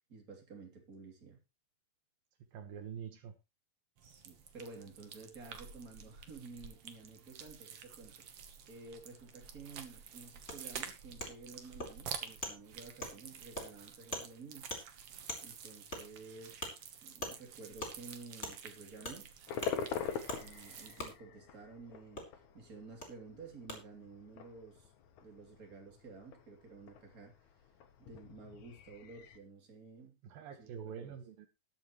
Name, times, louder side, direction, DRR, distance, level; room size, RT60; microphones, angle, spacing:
voice 1, 0.1-1.4 4.0-8.3 8.7-14.7 15.4-16.7 17.0-19.3 20.4-24.9 25.2-27.6 28.0-30.2 30.5-31.2, right 4 dB, 25° right, 3.2 m, -52 dB
voice 2, 2.5-3.3 30.2-31.5, right 7 dB, 75° right, 3.1 m, -45 dB
sound 1, 4.0-21.1, right 7 dB, 60° right, 1.6 m, -50 dB
Wood, 10.5-10.6 11.2-11.3 11.8-11.9 12.4-12.5 13.0-13.1 13.5-13.7 14.1-14.3 14.7-14.8 15.3-15.4 15.9-16.0 16.6-16.7 17.2-17.3 17.8-17.9 18.4-18.5 19.0-19.2 19.6-19.7 20.3-20.4 21.0-21.1 22.2-22.3 23.0-23.1 23.7-23.8, left 1 dB, 15° left, 3.8 m, -40 dB
sound 2, 19.5-29.4, left 7 dB, 65° left, 2.3 m, -45 dB
20.0 x 7.3 x 3.2 m
omnidirectional pair, 4.2 m